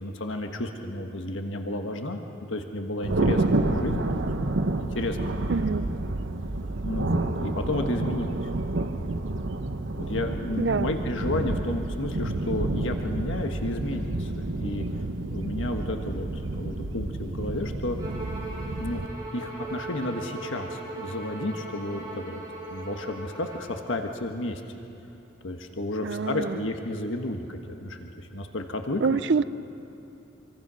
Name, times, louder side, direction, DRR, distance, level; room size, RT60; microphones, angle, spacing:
voice 1, 0.0-2.2 2.5-4.3 4.8-5.4 6.8-8.5 10.0-14.8 15.3-18.0 18.8-22.4 22.7-24.8 25.4-29.2, left 1 dB, 80° left, 4 dB, 1.5 m, -32 dB
Thunder, 3.0-19.1, right 2 dB, 80° right, 1.0 m, -29 dB
voice 2, 5.5-5.9 10.6-10.9 26.0-26.6 29.0-29.4, right 4 dB, 60° right, 15 dB, 0.5 m, -26 dB
Bowed string instrument, 18.0-23.7, right 2 dB, 20° right, 6.0 m, -39 dB
25.0 x 25.0 x 6.3 m, 2.9 s
head